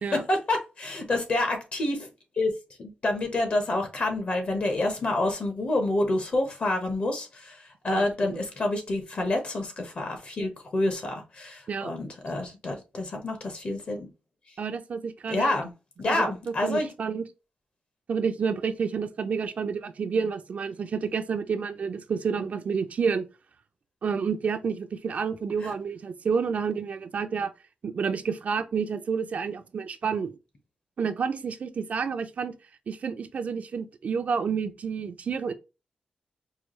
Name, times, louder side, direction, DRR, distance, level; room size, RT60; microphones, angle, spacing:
voice 1, 0.1-2.1 2.4-2.5 2.8-7.6 7.8-14.1 15.3-15.7 16.0-16.9 25.6-25.7, left 2 dB, 50° left, 1.2 m, -28 dB
voice 2, 8.0-8.4 11.7-11.9 14.6-15.6 16.1-16.3 16.6-17.3 18.1-23.3 24.0-27.5 27.8-30.3 31.0-32.5 32.9-35.5, right 6 dB, 55° right, 0.5 m, -29 dB
4.7 x 2.4 x 3.1 m
wide cardioid pair, 110°, 3 cm